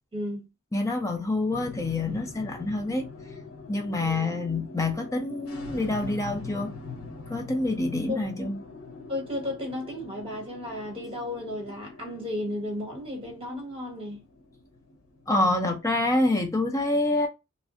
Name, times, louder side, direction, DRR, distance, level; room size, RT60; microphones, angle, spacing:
voice 1, 0.1-0.4 4.0-4.4 8.1-8.5 9.1-14.2, left 1 dB, 25° right, 1.5 m, -34 dB
voice 2, 0.7-3.1 3.7-6.7 7.3-8.6 15.3-17.3, left 2 dB, 15° left, 0.5 m, -27 dB
sound 1, 1.5-16.1, left 3 dB, 90° left, 0.9 m, -43 dB
3.0 x 2.6 x 2.5 m
head